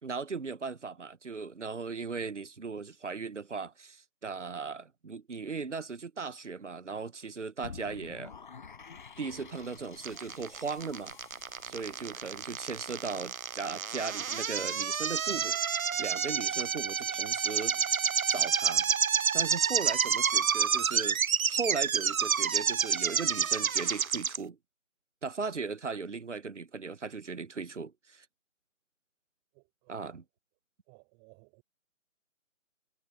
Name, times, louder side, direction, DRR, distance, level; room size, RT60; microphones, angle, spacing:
voice 1, 0.0-8.3 9.2-11.1 11.6-18.0 18.3-18.9 19.3-21.2 21.5-24.6 25.2-28.3 29.9-30.2, right 4 dB, 60° right, 1.2 m, -38 dB
sound 1, 7.6-13.7, left 5 dB, 35° left, 4.9 m, -50 dB
sound 2, 10.0-24.4, right 7 dB, 80° right, 0.7 m, -29 dB
voice 2, 20.1-21.0 29.5-30.2 30.9-31.6, right 40 dB or more, 10° right, 4.4 m, -59 dB
figure-of-eight pair, 160°, 41 cm